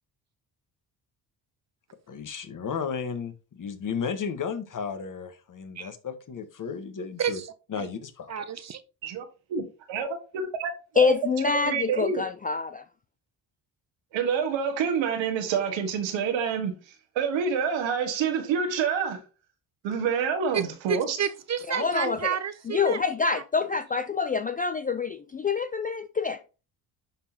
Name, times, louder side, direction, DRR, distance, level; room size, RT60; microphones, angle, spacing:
voice 1, 2.1-7.4 7.7-8.5, left 6 dB, 45° left, 1.3 m, -34 dB
voice 2, 8.3-8.8 20.5-20.6 20.9-23.0 23.3-23.4, right 8 dB, 35° right, 0.6 m, -30 dB
voice 3, 9.9-11.1 11.6-12.2 14.1-16.7 17.1-19.2 19.8-21.2, right 6 dB, 80° right, 1.6 m, -27 dB
voice 4, 11.0-12.8 21.7-22.4 22.7-26.4, left 5 dB, 20° left, 0.3 m, -26 dB
11.0 x 3.8 x 2.8 m
supercardioid pair, 75°, 45 cm